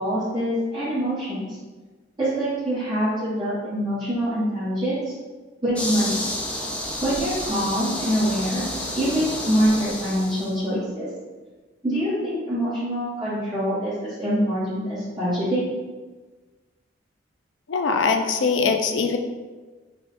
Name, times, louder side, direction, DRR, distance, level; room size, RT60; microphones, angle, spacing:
voice 1, 0.0-1.6 2.2-5.1 5.6-6.2 7.0-8.7 8.9-11.1 11.8-15.6, equal, 25° right, -12 dB, 1.3 m, -25 dB
sound 1, 5.8-10.6, left 1 dB, 5° left, 0.5 m, -30 dB
voice 2, 17.7-19.2, left 4 dB, 70° left, 6 dB, 0.4 m, -22 dB
5.1 x 2.4 x 3.6 m, 1.3 s
head